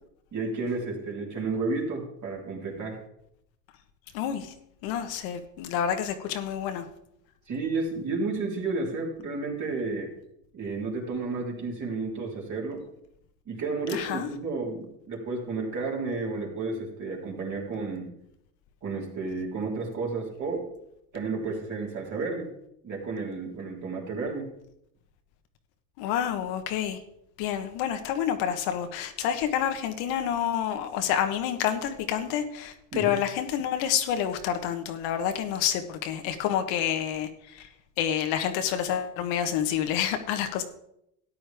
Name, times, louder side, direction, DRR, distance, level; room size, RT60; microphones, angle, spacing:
voice 1, 0.3-3.0 7.5-10.1 10.5-12.8 13.5-18.1 18.8-20.6 21.1-22.5 22.8-24.5 32.9-33.1, right 3 dB, 35° right, -1 dB, 3.7 m, -32 dB
voice 2, 4.1-4.5 4.8-6.9 13.9-14.3 26.0-27.0 27.4-37.7 38.0-40.6, left 9 dB, 70° left, 7 dB, 1.4 m, -28 dB
13.0 x 9.7 x 3.5 m, 0.77 s
supercardioid pair, 110°, 47 cm